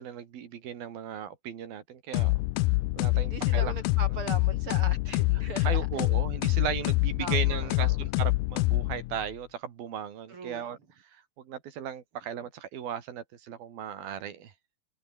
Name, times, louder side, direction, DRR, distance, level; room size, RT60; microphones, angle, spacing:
voice 1, 0.0-2.3 2.9-3.7 5.6-10.8 11.4-14.5, right 9 dB, 90° right, 4.4 m, -36 dB
sound 1, 2.1-9.3, left 21 dB, 80° left, 2.2 m, -26 dB
voice 2, 3.1-5.9 7.2-8.0 10.3-10.6, right 4 dB, 40° right, 3.1 m, -40 dB
omnidirectional pair, 4.1 m